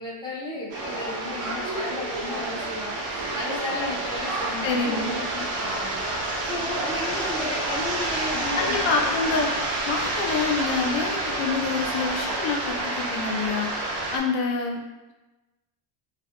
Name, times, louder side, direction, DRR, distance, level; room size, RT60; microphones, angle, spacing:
voice 1, 0.0-9.6, left 2 dB, 10° left, -6 dB, 0.7 m, -34 dB
sound 1, 0.7-14.2, right 2 dB, 45° right, 0.7 m, -29 dB
voice 2, 4.6-5.2 8.6-9.5 9.9-13.7 14.1-14.8, left 4 dB, 70° left, 1 dB, 0.6 m, -27 dB
2.4 x 2.0 x 2.8 m, 1.1 s
cardioid pair, 100°, 50 cm